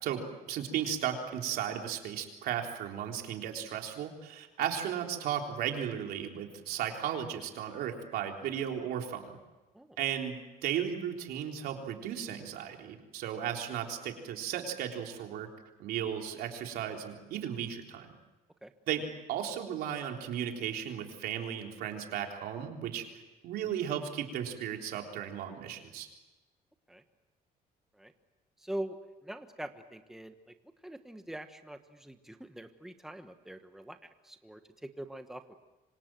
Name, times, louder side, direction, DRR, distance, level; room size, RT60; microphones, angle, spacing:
voice 1, 0.0-9.3 10.0-15.5 15.8-18.1 18.9-26.1, right 9 dB, 85° right, 2 dB, 3.7 m, -35 dB
voice 2, 28.6-30.5 30.8-35.5, right 1 dB, 5° right, 7 dB, 1.3 m, -43 dB
27.0 x 25.5 x 7.7 m, 1.1 s
cardioid pair, 140°, 16 cm